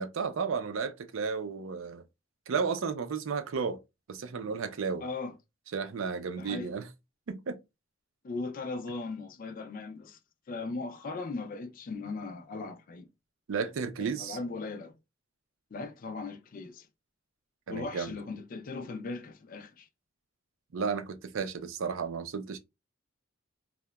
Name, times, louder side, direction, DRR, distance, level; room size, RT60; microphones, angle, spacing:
voice 1, 0.0-2.0 2.5-3.8 4.1-5.0 5.7-6.9 7.3-7.6 13.5-14.4 17.7-18.1 20.7-22.6, right 5 dB, 70° right, 0.4 m, -33 dB
voice 2, 5.0-5.4 6.4-6.7 8.2-10.2 10.5-13.1 14.0-14.9 15.7-16.9 17.7-19.9, left 3 dB, 40° left, 0.3 m, -38 dB
2.8 x 2.1 x 2.2 m
head